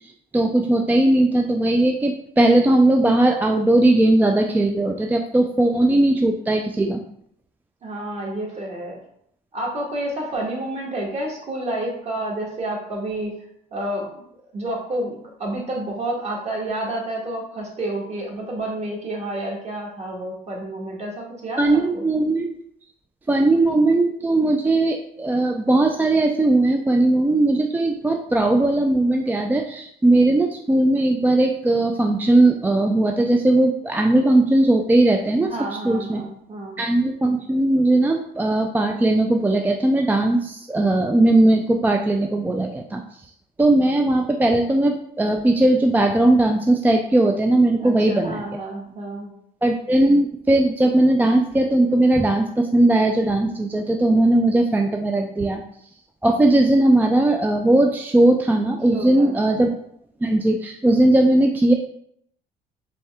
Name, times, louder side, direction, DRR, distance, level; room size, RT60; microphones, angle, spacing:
voice 1, 0.3-7.0 21.6-22.5 23.3-35.5 35.8-36.3 36.8-43.0 43.6-48.5 49.6-55.6 56.2-59.7 60.2-61.7, right 2 dB, 10° right, 2 dB, 0.3 m, -18 dB
voice 2, 7.8-9.0 9.5-13.4 13.7-14.2 14.5-22.0 35.4-36.8 47.8-49.3 58.9-59.5, right 1 dB, 40° right, -2 dB, 1.6 m, -29 dB
4.3 x 3.2 x 3.5 m, 0.71 s
cardioid pair, 110°, 17 cm